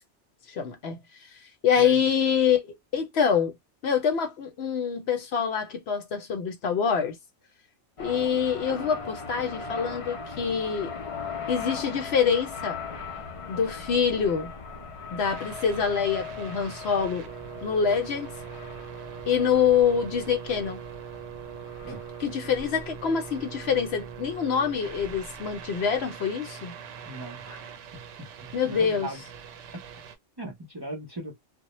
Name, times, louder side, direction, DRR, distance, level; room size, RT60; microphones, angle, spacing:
voice 1, 0.5-1.0 1.6-3.5 3.8-7.2 8.0-10.9 11.5-12.8 13.5-14.5 15.1-17.3 17.6-18.3 19.3-20.8 21.9-26.7 28.5-29.1, left 7 dB, 65° left, 0.8 m, -25 dB
sound 1, 8.0-26.0, left 5 dB, 45° left, 0.4 m, -40 dB
sound 2, 15.2-30.2, right 8 dB, 85° right, 1.0 m, -42 dB
voice 2, 27.1-27.6 28.4-29.2 30.4-31.4, right 2 dB, 25° right, 0.5 m, -38 dB
2.1 x 2.1 x 2.9 m
omnidirectional pair, 1.2 m